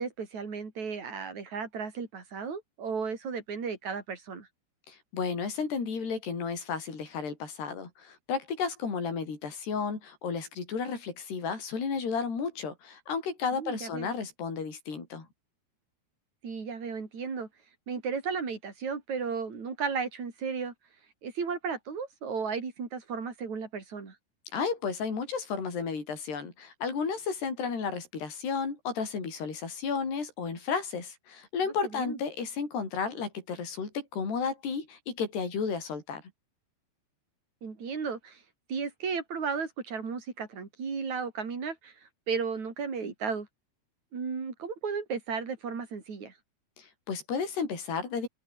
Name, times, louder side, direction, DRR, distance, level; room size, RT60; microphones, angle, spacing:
voice 1, 0.0-4.5 13.5-14.1 16.4-17.5 17.9-20.7 21.2-24.2 31.9-32.2 37.6-38.4 38.7-43.5 44.1-46.3, right 5 dB, 45° right, 5.7 m, -34 dB
voice 2, 4.9-15.3 24.5-36.2 46.8-48.3, left 5 dB, 75° left, 8.3 m, -33 dB
omnidirectional pair, 4.8 m